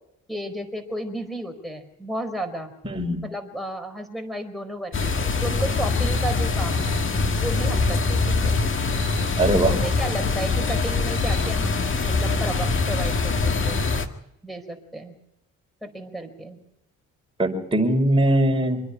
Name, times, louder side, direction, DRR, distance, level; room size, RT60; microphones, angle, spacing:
voice 1, 0.3-6.9 7.4-8.6 9.7-13.8 14.4-15.1 15.8-16.6, right 1 dB, ahead, 7 dB, 4.6 m, -33 dB
voice 2, 2.9-3.2 9.4-9.7 17.4-18.8, right 1 dB, 15° right, 0 dB, 5.1 m, -20 dB
sound 1, 4.9-14.1, left 3 dB, 40° left, 1.8 m, -23 dB
26.0 x 10.0 x 9.9 m, 0.83 s
cardioid pair, 90°, 30 cm